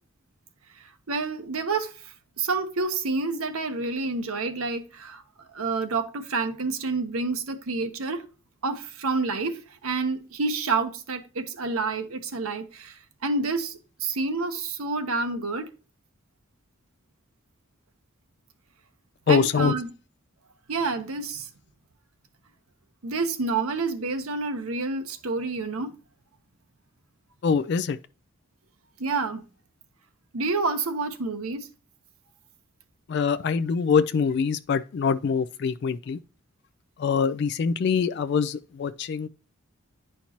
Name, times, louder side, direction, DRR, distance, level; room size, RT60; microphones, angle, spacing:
voice 1, 1.1-1.9 2.4-5.2 5.5-8.2 8.6-12.9 13.2-15.7 19.3-19.9 20.7-21.5 23.0-25.9 29.0-29.4 30.3-31.7, right 3 dB, 90° right, 0.9 m, -28 dB
voice 2, 19.3-19.7 27.4-28.0 33.1-36.2 37.0-39.3, left 6 dB, 50° left, 0.3 m, -24 dB
10.5 x 4.4 x 2.9 m
head